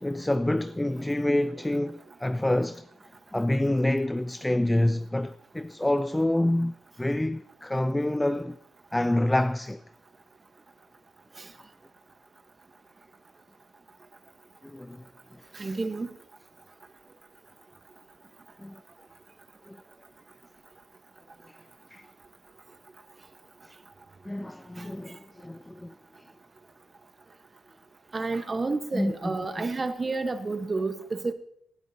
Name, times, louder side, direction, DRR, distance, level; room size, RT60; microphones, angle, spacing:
voice 1, 0.0-2.8 3.3-8.6 8.9-9.8 14.6-15.0 15.7-15.8 18.6-18.8 19.7-19.8 21.9-22.0 24.3-25.9 28.9-29.3, left 1 dB, 10° left, 0.4 m, -27 dB
voice 2, 15.5-16.1 24.8-24.9 28.1-31.3, right 3 dB, 30° right, 1.2 m, -30 dB
19.0 x 10.5 x 2.8 m
supercardioid pair, 55°, 0 cm